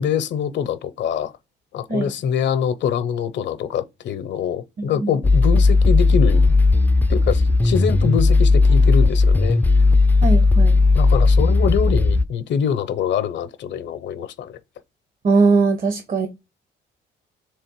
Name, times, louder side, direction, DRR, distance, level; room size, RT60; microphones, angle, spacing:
voice 1, 0.0-1.3 1.7-6.6 7.1-9.6 10.9-14.6, left 8 dB, 65° left, 0.6 m, -24 dB
voice 2, 4.8-5.1 10.2-10.8 15.2-16.3, right 4 dB, 45° right, 0.8 m, -20 dB
sound 1, 5.2-12.3, left 3 dB, 10° left, 0.3 m, -15 dB
3.4 x 3.3 x 4.5 m
cardioid pair, 90°, 20 cm